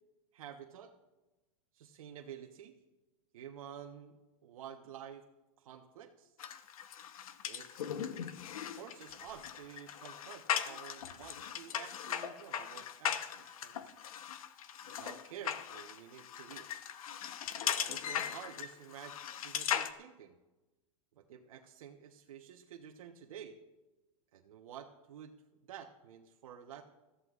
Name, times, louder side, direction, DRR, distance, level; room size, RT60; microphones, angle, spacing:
voice 1, 0.3-0.9 1.7-2.7 3.3-4.1 4.4-5.2 5.6-6.3 7.4-7.8 8.8-14.0 14.8-16.7 17.6-20.4 21.1-23.6 24.3-25.3 25.7-26.8, right 9 dB, 75° right, 3 dB, 1.2 m, -50 dB
sound 1, 6.4-19.9, left 9 dB, 85° left, 1.0 m, -39 dB
20.5 x 14.5 x 2.5 m, 1.1 s
hypercardioid pair, 130°, 18 cm